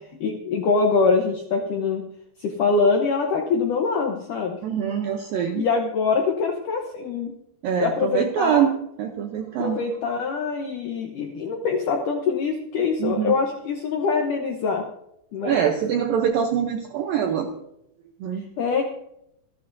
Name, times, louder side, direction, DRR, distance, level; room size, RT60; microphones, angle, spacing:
voice 1, 0.2-2.0 2.4-4.6 5.6-7.3 7.8-8.6 9.6-14.9 15.3-15.6 18.6-18.8, left 4 dB, 75° left, 2 dB, 1.9 m, -24 dB
voice 2, 4.6-5.6 7.6-9.8 13.0-13.3 15.4-17.5 18.2-18.4, right 8 dB, 80° right, 4 dB, 2.0 m, -24 dB
27.0 x 10.0 x 2.7 m, 0.80 s
omnidirectional pair, 5.2 m